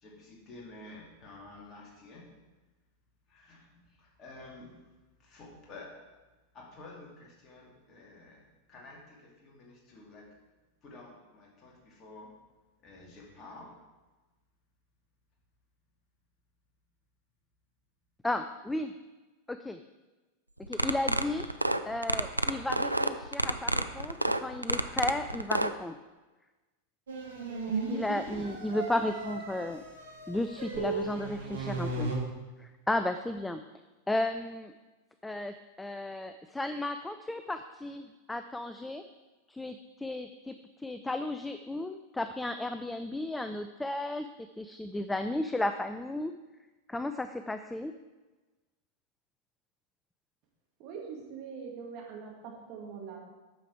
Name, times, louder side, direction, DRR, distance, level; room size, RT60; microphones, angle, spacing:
voice 1, 0.0-2.3 3.3-4.7 5.2-6.1 6.5-8.4 8.7-10.3 10.8-12.3 12.8-13.7, left 2 dB, 30° left, -2 dB, 2.3 m, -50 dB
voice 2, 18.2-18.9 19.5-19.8 20.7-21.4 21.9-26.0 27.7-29.8 30.3-32.1 32.6-33.6 34.1-34.7 35.2-39.0 39.5-44.3 44.6-46.3 46.9-47.9, left 1 dB, 5° left, 9 dB, 0.3 m, -34 dB
sound 1, 20.6-25.7, right 1 dB, 85° right, 0.4 m, -28 dB
sound 2, 27.1-32.2, right 3 dB, 65° right, 1.6 m, -36 dB
voice 3, 50.8-53.2, right 6 dB, 40° right, -1 dB, 2.0 m, -43 dB
8.8 x 6.6 x 4.7 m, 1.2 s
figure-of-eight pair, 90°, 0 cm